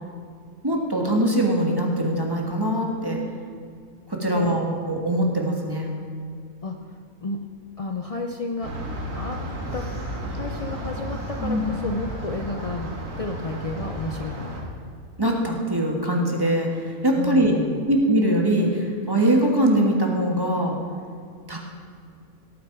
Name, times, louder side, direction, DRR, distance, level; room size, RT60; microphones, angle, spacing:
voice 1, 0.6-3.2 4.1-5.9 11.4-11.7 15.2-16.7 17.0-17.5 17.9-20.8 21.5-21.6, right 1 dB, 15° right, -1 dB, 1.6 m, -22 dB
voice 2, 4.3-4.8 6.6-6.9 7.2-7.4 7.8-8.7 9.1-9.4 9.7-9.9 10.2-14.5 17.2-17.9, left 3 dB, 55° left, 3 dB, 0.4 m, -31 dB
sound 1, 8.6-14.6, equal, 85° right, 2.3 m, -33 dB
sound 2, 9.6-13.1, right 1 dB, 35° left, 4.3 m, -41 dB
17.5 x 8.6 x 4.7 m, 2.3 s
omnidirectional pair, 1.6 m